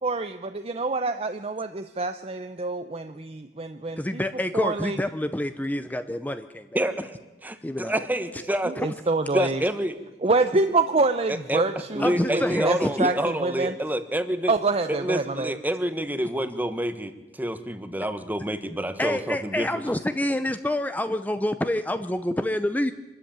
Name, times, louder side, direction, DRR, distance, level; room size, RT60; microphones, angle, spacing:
voice 1, 0.0-4.2 4.5-5.0 8.7-9.6 10.2-13.7 14.5-15.5, right 3 dB, 35° right, 8 dB, 0.7 m, -26 dB
voice 2, 4.0-6.7 7.6-7.9 12.0-13.1 19.0-22.9, left 1 dB, 10° left, 10 dB, 0.6 m, -27 dB
voice 3, 6.7-7.2 7.4-8.7 9.3-10.0 11.3-11.6 11.9-14.5 14.9-17.1 17.4-19.7, right 1 dB, 10° right, 10 dB, 1.3 m, -28 dB
25.5 x 13.0 x 8.8 m, 1.1 s
head